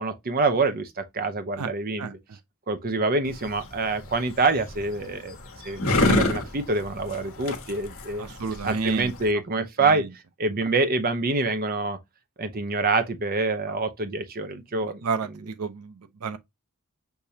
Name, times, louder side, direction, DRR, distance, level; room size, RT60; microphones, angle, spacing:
voice 1, 0.0-2.2 2.7-5.4 5.6-8.3 8.6-10.0 10.4-12.0 12.4-15.0, right 3 dB, 40° right, 0.8 m, -26 dB
sound 1, 3.2-9.3, left 2 dB, 65° left, 1.2 m, -28 dB
voice 2, 8.2-9.4 9.8-10.1 13.7-13.8 14.8-16.4, right 5 dB, 85° right, 0.6 m, -32 dB
6.7 x 2.8 x 2.7 m
head